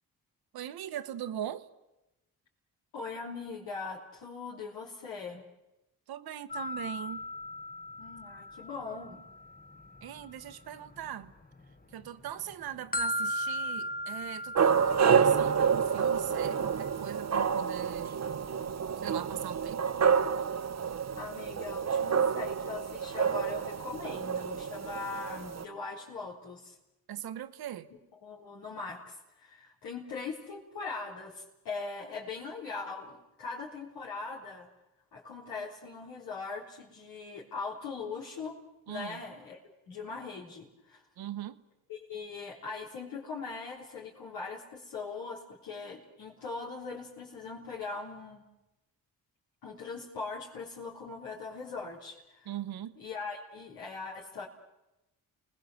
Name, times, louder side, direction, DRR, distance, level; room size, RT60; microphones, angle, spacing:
voice 1, 0.5-1.7 6.1-7.2 10.0-11.3 11.9-18.2 19.0-19.8 27.1-27.9 38.9-39.2 41.2-41.6 52.5-53.0, right 11 dB, 75° right, 1.2 m, -40 dB
voice 2, 2.9-5.4 8.0-9.2 21.1-26.8 28.2-34.7 35.1-38.5 38.9-39.6 39.9-41.0 41.9-48.4 49.6-52.5 53.0-54.5, left 4 dB, 85° left, 4.0 m, -41 dB
sound 1, 6.5-11.6 11.9-17.3, equal, 25° left, 1.6 m, -38 dB
sound 2, 14.5-25.6, right 7 dB, 45° right, 1.0 m, -28 dB
29.5 x 20.0 x 7.9 m
supercardioid pair, 60°, 37 cm